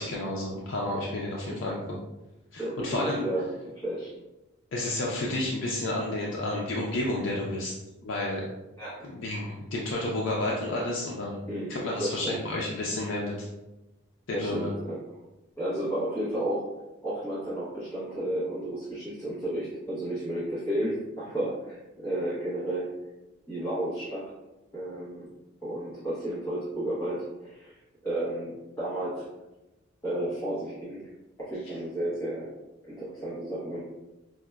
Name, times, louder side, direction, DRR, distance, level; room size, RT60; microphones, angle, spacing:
voice 1, 0.0-1.8 2.5-3.2 4.7-7.7 8.0-8.5 9.1-11.4 11.7-13.3 14.3-14.7, left 1 dB, 75° left, -3 dB, 0.4 m, -31 dB
voice 2, 2.6-3.5 3.8-4.1 8.8-9.1 11.5-12.4 14.3-15.0 15.6-16.7 17.0-22.9 23.5-24.3 24.7-25.3 25.6-27.8 28.0-29.3 30.0-31.0 31.4-32.5 32.8-33.8, right 1 dB, 15° left, -10 dB, 0.7 m, -32 dB
4.7 x 2.0 x 2.2 m, 1.0 s
head